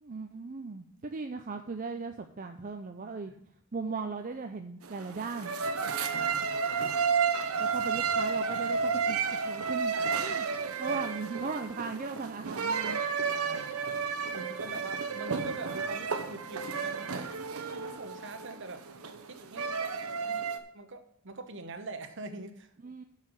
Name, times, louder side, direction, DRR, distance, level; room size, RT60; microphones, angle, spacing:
voice 1, 0.0-3.3 3.7-5.5 7.6-10.4 10.8-13.0 20.3-20.5 22.8-23.0, right 4 dB, 40° right, 6 dB, 0.5 m, -38 dB
sound 1, 4.8-20.6, right 5 dB, 80° right, 0.9 m, -32 dB
voice 2, 6.1-6.9 9.9-10.4 10.9-11.0 13.3-19.9 20.2-20.4 20.7-22.7, right 3 dB, 55° right, 8 dB, 1.0 m, -44 dB
7.5 x 5.8 x 7.5 m, 0.73 s
head